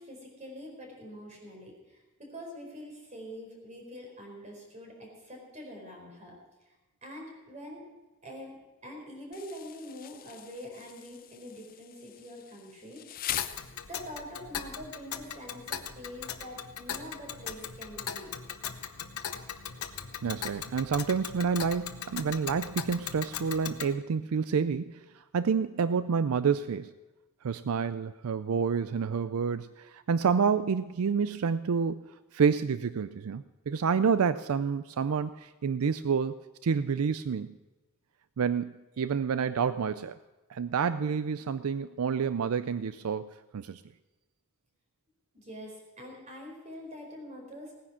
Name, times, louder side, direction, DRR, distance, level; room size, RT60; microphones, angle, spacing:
voice 1, 0.0-6.3 7.0-7.9 8.2-13.4 13.9-18.3 45.3-47.8, equal, 35° right, 0 dB, 4.5 m, -45 dB
Insect, 9.3-14.3, left 12 dB, 40° left, 0.5 m, -42 dB
Tick, 13.4-23.9, left 8 dB, 85° left, 0.9 m, -39 dB
voice 2, 20.2-26.9 27.4-32.0 32.3-37.5 38.4-40.2 40.5-43.8, right 6 dB, 85° right, 13 dB, 0.4 m, -29 dB
17.5 x 9.9 x 6.0 m, 1.1 s
head